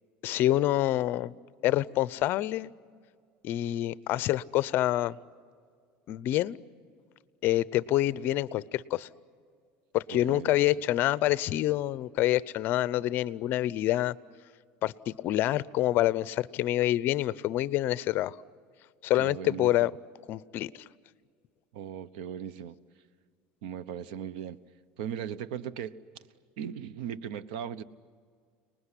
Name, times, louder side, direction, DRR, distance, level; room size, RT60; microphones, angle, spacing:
voice 1, 0.2-1.3 1.6-2.7 3.4-5.2 6.1-6.6 7.4-9.1 9.9-14.1 14.8-18.4 19.0-19.9 20.3-20.7, left 14 dB, 50° left, 19 dB, 0.6 m, -27 dB
voice 2, 10.1-10.5 19.2-19.9 21.7-22.8 23.6-24.6 25.0-26.0 26.6-27.8, right 9 dB, 85° right, 17 dB, 1.0 m, -38 dB
30.0 x 20.0 x 9.9 m, 2.1 s
cardioid pair, 145°, 5 cm